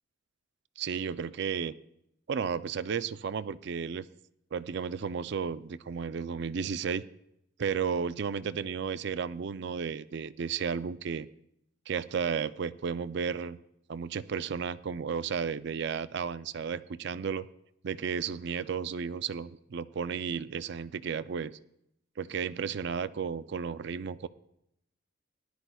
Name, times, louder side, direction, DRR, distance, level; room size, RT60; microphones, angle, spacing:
voice 1, 0.8-1.7 2.3-4.1 4.5-7.0 7.6-11.3 11.9-13.6 13.9-17.5 17.8-21.6 22.2-24.3, right 6 dB, 60° right, 14 dB, 0.4 m, -33 dB
18.5 x 11.5 x 2.3 m, 0.78 s
head